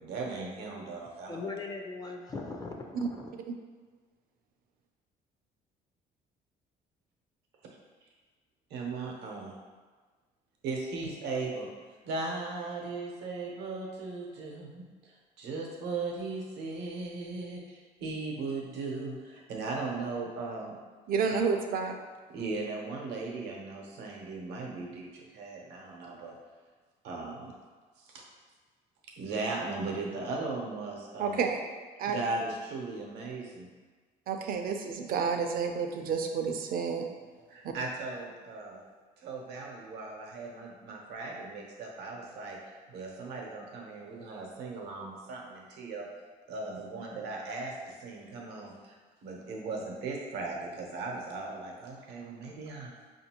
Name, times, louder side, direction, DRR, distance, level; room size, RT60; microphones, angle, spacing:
voice 1, 0.0-1.4 8.7-9.5 10.6-11.7 12.0-20.8 21.3-21.4 22.3-26.3 27.0-27.5 28.0-28.2 29.2-31.4 32.0-33.7 37.5-38.8 39.2-42.6 42.9-46.1 46.5-49.0 49.2-52.9, right 3 dB, 85° right, -1 dB, 0.8 m, -38 dB
voice 2, 1.3-3.3, left 3 dB, 20° left, 2 dB, 0.4 m, -39 dB
voice 3, 21.1-22.0 31.2-31.6 32.0-32.2 34.3-37.1 37.6-37.7, right 5 dB, 60° right, 4 dB, 0.5 m, -30 dB
5.0 x 2.6 x 2.8 m, 1.4 s
cardioid pair, 110°, 17 cm